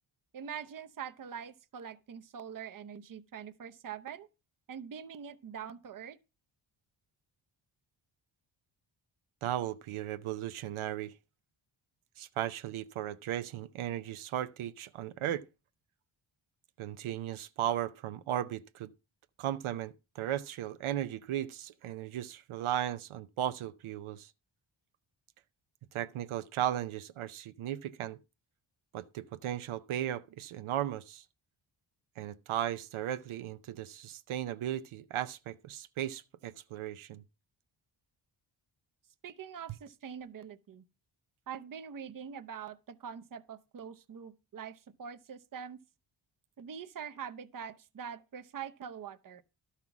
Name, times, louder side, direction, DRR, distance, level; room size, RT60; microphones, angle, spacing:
voice 1, 0.3-4.3 4.7-6.2 39.2-40.8 41.5-45.8 46.6-49.4, right 7 dB, 45° right, 0.7 m, -44 dB
voice 2, 9.4-11.1 12.2-15.4 16.8-18.9 19.4-24.3 25.9-28.2 28.9-31.2 32.2-37.2, right 11 dB, 85° right, 0.6 m, -36 dB
12.0 x 5.7 x 5.9 m
wide cardioid pair, 135°, 48 cm